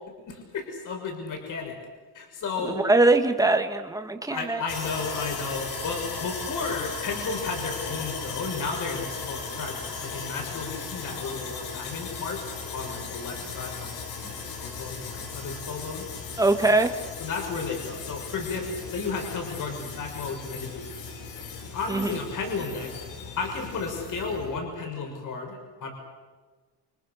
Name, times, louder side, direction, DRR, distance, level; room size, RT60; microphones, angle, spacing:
voice 1, 0.2-1.8 2.1-2.8 4.3-12.4 12.7-16.1 17.2-21.0 21.7-23.0 23.4-25.9, left 4 dB, 50° left, 2 dB, 6.4 m, -33 dB
voice 2, 2.6-4.6 16.4-16.9 21.9-22.2, right 2 dB, 10° right, 5 dB, 2.1 m, -22 dB
Sawing, 4.7-24.6, left 5 dB, 90° left, 6.9 m, -37 dB
30.0 x 26.0 x 6.7 m, 1.4 s
cardioid pair, 160°, 40 cm